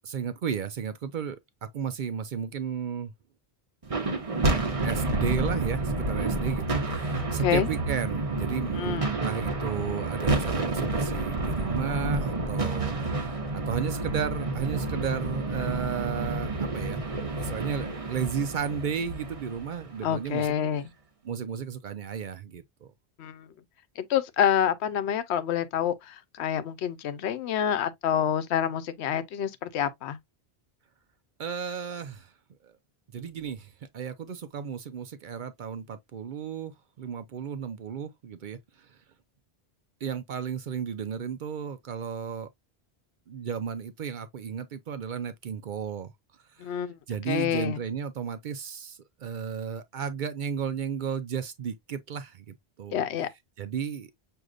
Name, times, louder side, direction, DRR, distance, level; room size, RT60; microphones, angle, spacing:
voice 1, 0.0-3.1 4.8-12.9 13.2-17.0 17.4-20.5 21.2-22.9 31.4-32.3 32.6-32.8 33.1-39.0 40.0-42.5 43.3-46.1 46.5-46.8 47.1-53.0 53.6-54.1, right 7 dB, 55° right, 0.6 m, -34 dB
sound 1, 3.8-20.2, right 2 dB, 35° right, 0.9 m, -29 dB
voice 2, 7.2-7.7 8.7-9.1 20.0-20.8 23.2-23.5 24.0-30.2 46.6-47.0 47.3-47.8 52.9-53.3, left 9 dB, 85° left, 0.9 m, -27 dB
6.3 x 2.6 x 2.3 m
omnidirectional pair, 1.1 m